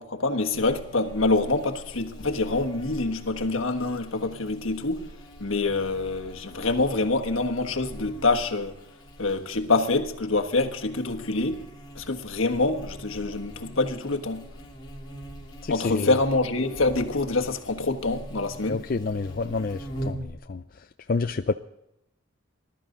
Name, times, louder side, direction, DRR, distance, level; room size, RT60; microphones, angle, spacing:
voice 1, 0.0-5.0 5.4-8.7 9.2-11.6 11.9-14.5 15.7-18.8, left 3 dB, 75° left, 1.4 m, -26 dB
Buzz, 0.5-20.3, equal, 20° left, 2.9 m, -42 dB
voice 2, 15.6-16.2 18.7-20.6 21.1-21.5, left 4 dB, 45° left, 0.4 m, -28 dB
20.0 x 12.5 x 3.8 m
head